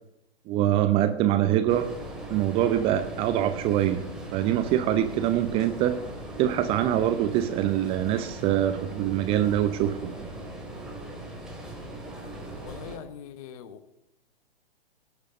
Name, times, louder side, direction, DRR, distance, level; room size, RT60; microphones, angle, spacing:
voice 1, 0.5-1.9 2.3-4.0 4.3-6.0 6.4-10.3, right 11 dB, 20° right, 9 dB, 0.6 m, -24 dB
sound 1, 1.7-13.0, right 1 dB, ahead, 2.6 m, -39 dB
voice 2, 12.6-13.9, left 9 dB, 35° left, 13 dB, 1.1 m, -42 dB
17.5 x 6.6 x 8.1 m, 0.82 s
figure-of-eight pair, 120°, 31 cm